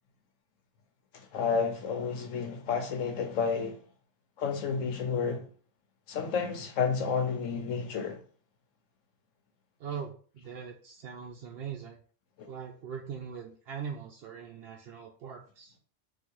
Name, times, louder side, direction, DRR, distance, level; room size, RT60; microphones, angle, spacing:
voice 1, 1.1-3.8 4.4-5.5 6.1-8.2 12.4-12.5, left 5 dB, 85° left, 1.2 m, -31 dB
voice 2, 9.8-12.0 12.5-15.7, right 7 dB, 60° right, 0.7 m, -41 dB
3.9 x 2.6 x 4.5 m
omnidirectional pair, 1.3 m